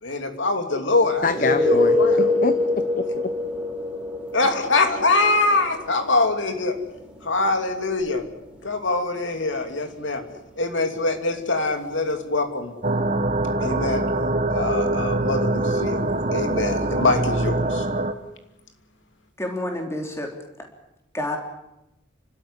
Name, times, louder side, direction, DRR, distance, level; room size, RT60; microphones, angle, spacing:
voice 1, 0.0-2.3 4.3-6.7 7.2-8.2 8.6-10.2 10.6-12.7 13.6-14.0 14.5-17.9, left 3 dB, 75° left, 6 dB, 2.9 m, -24 dB
voice 2, 1.2-3.3, left 3 dB, 45° left, 11 dB, 0.9 m, -26 dB
sound 1, 1.2-12.7 17.0-17.1, left 2 dB, 5° right, 4.4 m, -27 dB
sound 2, 12.8-18.1, right 2 dB, 40° right, 1.2 m, -24 dB
voice 3, 19.4-20.6 21.1-21.4, left 1 dB, 15° left, 2 dB, 3.4 m, -29 dB
30.0 x 13.0 x 9.9 m, 0.91 s
head